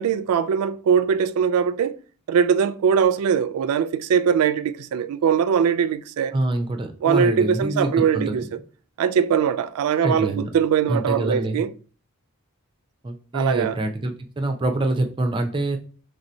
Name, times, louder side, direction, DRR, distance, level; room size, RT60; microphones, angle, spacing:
voice 1, 0.0-2.0 2.3-6.3 7.0-8.4 9.0-11.7 13.3-13.8, right 7 dB, 90° right, 0.3 m, -21 dB
voice 2, 6.3-8.4 10.0-10.5 10.9-11.6 13.0-15.8, right 2 dB, 20° right, 0.4 m, -25 dB
3.3 x 2.7 x 4.3 m
head